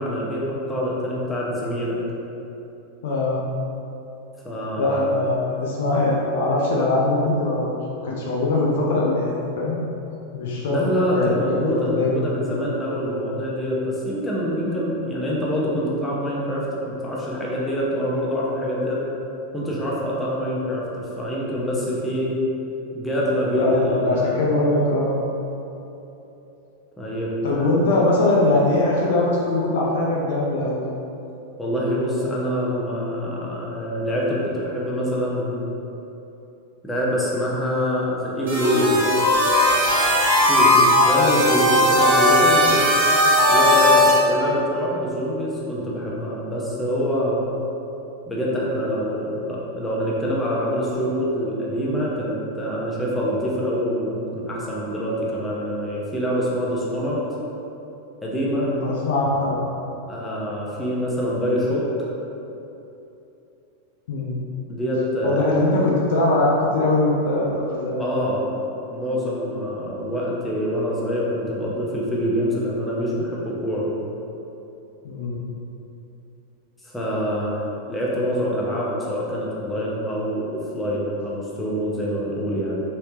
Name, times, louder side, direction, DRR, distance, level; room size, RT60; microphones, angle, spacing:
voice 1, 0.0-2.0 4.4-5.0 10.7-19.0 19.5-22.3 22.9-24.4 27.0-27.7 31.6-35.7 36.8-39.1 40.5-40.7 41.0-42.9 43.5-47.5 48.3-57.2 58.2-58.7 60.1-61.9 64.7-65.6 68.0-68.4 68.9-73.9 76.8-77.6 77.9-82.8, equal, 10° left, -6 dB, 0.8 m, -25 dB
voice 2, 3.0-3.4 4.8-7.7 8.0-9.8 10.3-10.9 11.1-11.4 11.8-12.1 23.6-25.2 27.4-30.8 40.5-40.8 58.6-59.7 64.1-64.4 65.2-68.1 75.0-75.4, left 2 dB, 55° left, -4 dB, 0.6 m, -21 dB
sound 1, 38.5-44.2, left 1 dB, 60° right, 1.2 m, -17 dB
4.2 x 3.3 x 2.8 m, 2.9 s
figure-of-eight pair, 90°, 0 cm